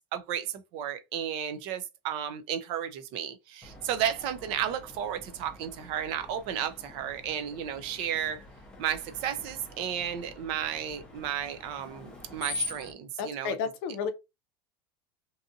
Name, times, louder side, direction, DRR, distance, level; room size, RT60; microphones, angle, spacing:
voice 1, 0.1-8.5 8.8-13.5, right 9 dB, 45° right, 0.4 m, -33 dB
Screech, 3.6-12.9, left 2 dB, 10° left, 0.6 m, -43 dB
voice 2, 13.2-14.1, left 6 dB, 60° left, 0.5 m, -32 dB
2.7 x 2.4 x 2.6 m
cardioid pair, 170°, 12 cm